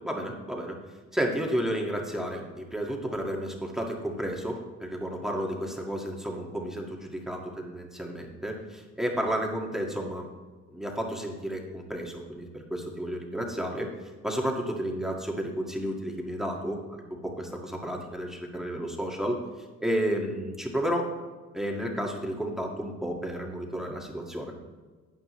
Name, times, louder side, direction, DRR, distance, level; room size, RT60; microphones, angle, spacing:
voice 1, 0.0-0.8 1.1-10.3 10.7-13.9 14.2-19.4 19.8-21.1 21.5-24.5, equal, ahead, 0 dB, 2.0 m, -32 dB
13.0 x 9.3 x 3.2 m, 1.4 s
cardioid pair, 105°, 29 cm